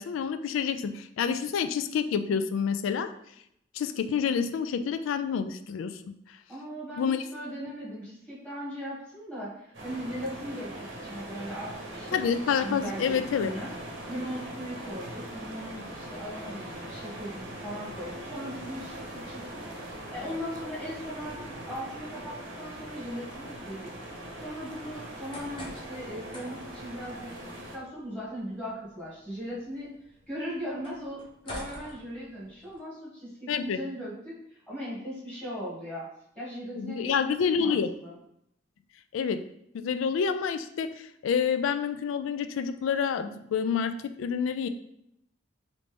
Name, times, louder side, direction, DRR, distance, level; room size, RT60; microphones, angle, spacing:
voice 1, 0.0-3.1 3.7-6.0 7.0-7.2 12.1-13.5 33.5-33.8 36.8-37.9 39.1-39.4 39.7-44.7, left 6 dB, 90° left, 11 dB, 0.3 m, -28 dB
voice 2, 6.5-12.3 12.6-13.7 14.1-23.9 24.4-29.9 30.3-36.1 36.3-38.1, equal, 5° left, -8 dB, 1.3 m, -39 dB
sound 1, 9.7-27.8, right 1 dB, 80° right, 0.8 m, -41 dB
sound 2, 25.0-32.8, left 1 dB, 25° left, 0.6 m, -48 dB
3.2 x 2.6 x 3.3 m, 0.76 s
head